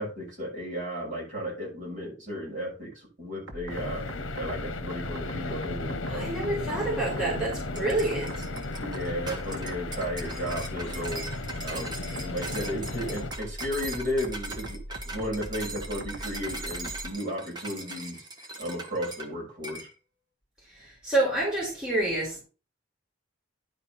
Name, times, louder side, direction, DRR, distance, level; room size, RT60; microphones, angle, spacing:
voice 1, 0.0-6.4 6.7-7.5 8.8-11.3 11.6-11.9 12.2-19.9, equal, 40° right, -4 dB, 6.1 m, -34 dB
sound 1, 3.5-17.1, right 1 dB, 70° right, 1.6 m, -41 dB
sound 2, 3.7-13.3, left 3 dB, 75° left, 0.9 m, -36 dB
voice 2, 6.1-8.4 20.7-22.4, right 2 dB, 5° right, -6 dB, 3.4 m, -28 dB
sound 3, 7.7-19.3 19.6-19.9, right 2 dB, 20° right, 1.2 m, -40 dB
10.5 x 4.5 x 5.6 m, 0.35 s
head